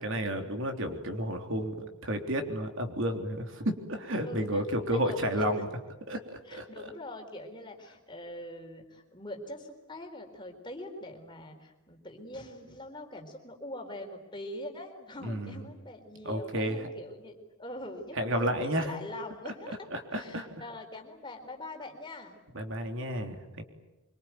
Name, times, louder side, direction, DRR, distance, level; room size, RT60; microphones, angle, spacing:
voice 1, 0.0-5.7 6.1-6.7 15.2-15.6 16.2-16.8 18.2-18.9 19.9-20.5 22.5-23.6, equal, 60° right, 5 dB, 3.5 m, -31 dB
voice 2, 4.2-5.5 6.4-19.8 20.1-22.4, left 1 dB, 20° left, 3 dB, 4.2 m, -43 dB
25.5 x 24.5 x 9.3 m, 1.0 s
head